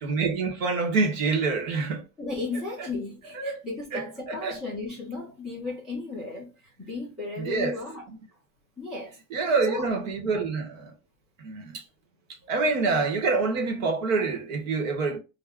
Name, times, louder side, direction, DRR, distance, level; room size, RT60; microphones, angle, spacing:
voice 1, 0.0-2.0 2.8-2.9 3.3-3.6 3.9-4.6 7.4-7.8 8.1-8.2 9.3-10.9 11.4-11.8 12.5-15.2, right 4 dB, 65° right, 1.0 m, -26 dB
voice 2, 2.2-8.0 8.8-9.2 9.7-9.9, left 3 dB, ahead, 0.4 m, -35 dB
2.3 x 2.1 x 3.5 m
supercardioid pair, 170°, 44 cm